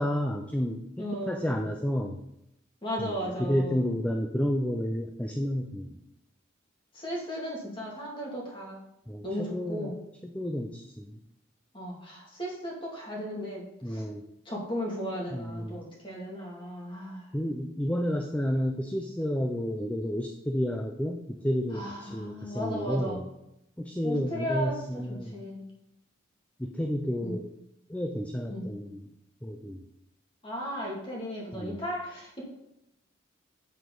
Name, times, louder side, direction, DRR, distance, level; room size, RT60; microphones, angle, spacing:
voice 1, 0.0-2.2 3.0-6.0 9.1-9.9 10.2-11.2 13.8-14.2 15.3-15.8 17.3-23.2 23.8-25.4 26.6-27.5 27.9-29.0 29.4-29.8 31.5-31.8, equal, 5° left, 3 dB, 0.5 m, -31 dB
voice 2, 1.0-1.5 2.8-3.8 6.9-8.8 9.2-9.9 11.7-14.1 14.4-17.3 21.7-23.2 24.0-24.8 25.1-25.6 27.2-27.4 28.5-28.6 30.4-32.5, equal, 25° left, -3 dB, 2.4 m, -35 dB
8.1 x 7.6 x 4.0 m, 0.83 s
head